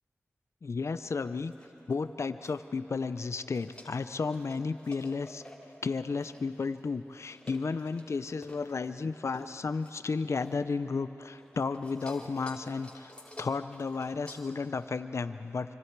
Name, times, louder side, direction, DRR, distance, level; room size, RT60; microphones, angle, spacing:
voice 1, 0.6-1.5 1.9-5.4 5.8-13.1 13.4-15.8, left 4 dB, 65° left, 11 dB, 0.7 m, -33 dB
sound 1, 1.4-2.6 3.1-11.0 11.3-14.8, left 1 dB, 20° left, 3.5 m, -52 dB
26.5 x 25.5 x 4.7 m, 3.0 s
cardioid pair, 40°, 5 cm